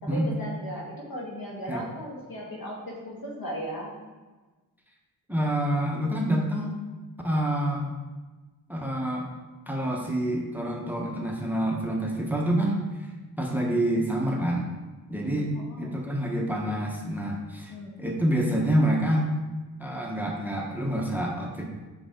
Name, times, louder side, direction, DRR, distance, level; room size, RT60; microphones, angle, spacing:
voice 1, 0.0-3.9 15.5-16.0 17.7-18.0, equal, 65° left, -3 dB, 1.9 m, -37 dB
voice 2, 5.3-6.8 7.2-7.9 8.7-9.3 9.7-13.1 13.4-14.7 15.1-15.5 15.8-17.7 18.0-19.3 19.8-21.6, right 1 dB, 5° right, 0 dB, 1.1 m, -27 dB
6.5 x 4.7 x 3.8 m, 1.2 s
cardioid pair, 60°, 37 cm